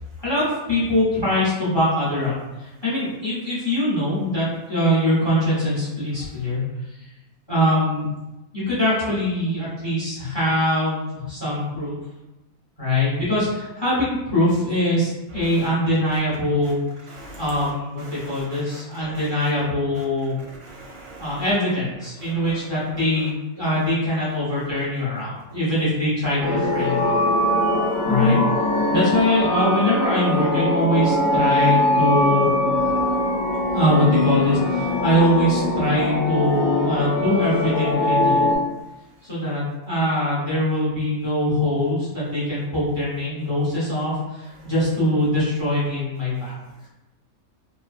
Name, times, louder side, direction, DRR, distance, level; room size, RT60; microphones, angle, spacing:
voice 1, 0.2-2.3 2.8-6.6 7.5-8.1 8.5-12.0 12.8-16.8 17.4-20.3 21.2-27.1 28.0-28.4 28.9-32.5 33.7-38.5 39.3-46.5, left 1 dB, 25° left, -8 dB, 0.7 m, -22 dB
voice 2, 17.1-17.4 18.1-19.2 20.6-21.4 28.1-28.4, left 2 dB, 90° right, -3 dB, 1.2 m, -30 dB
sound 1, 26.4-38.6, left 2 dB, 75° left, 1.0 m, -22 dB
3.1 x 2.1 x 2.4 m, 0.99 s
omnidirectional pair, 1.5 m